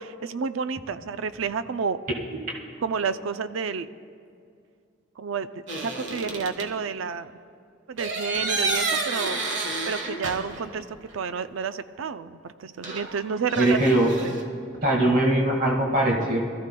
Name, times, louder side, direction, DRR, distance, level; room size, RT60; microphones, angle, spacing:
voice 1, 0.0-2.0 2.8-3.9 5.2-7.3 7.9-9.4 9.9-13.8 14.2-14.4, right 5 dB, 90° right, 12 dB, 0.5 m, -30 dB
sound 1, 5.7-6.7 8.0-10.8 11.1-11.2 12.8-14.4, right 3 dB, 65° right, 1.3 m, -30 dB
voice 2, 13.6-14.1 14.8-16.4, right 1 dB, 45° right, -1 dB, 1.8 m, -21 dB
23.5 x 14.0 x 2.3 m, 2.4 s
head